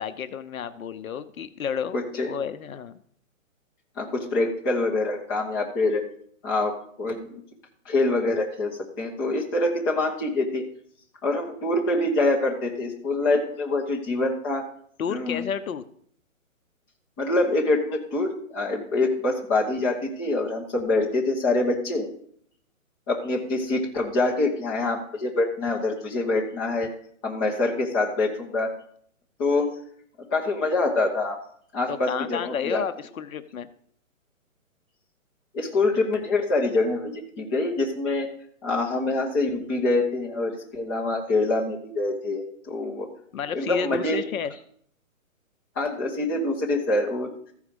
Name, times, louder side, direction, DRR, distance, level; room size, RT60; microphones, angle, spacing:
voice 1, 0.0-2.0 2.2-2.9 15.0-15.9 31.9-33.7 43.3-44.5, left 7 dB, 75° left, 11 dB, 0.8 m, -31 dB
voice 2, 1.9-2.4 4.0-6.1 6.4-7.4 7.8-8.7 9.0-10.6 11.2-14.7 15.1-15.4 17.2-22.1 23.1-26.9 27.2-28.7 29.4-29.7 30.3-31.4 31.7-32.8 35.5-38.3 38.6-43.1 43.5-44.2 45.7-47.3, left 2 dB, 15° left, -1 dB, 1.1 m, -25 dB
14.5 x 4.9 x 5.1 m, 0.63 s
hypercardioid pair, 165°, 42 cm